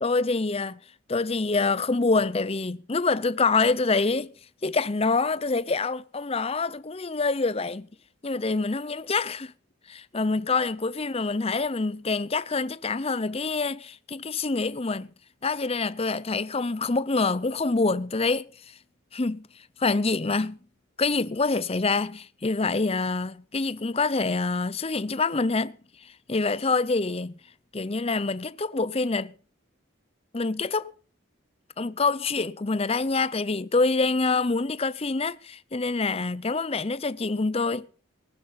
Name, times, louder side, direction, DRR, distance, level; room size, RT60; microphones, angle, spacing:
voice 1, 0.0-0.8 1.1-4.3 4.6-7.9 8.2-9.5 9.9-15.1 15.4-18.7 19.1-19.5 19.8-20.6 21.0-25.8 26.0-27.4 27.7-29.3 30.3-30.9 31.8-37.9, left 3 dB, 25° left, 0.6 m, -26 dB
19.5 x 10.5 x 5.7 m
head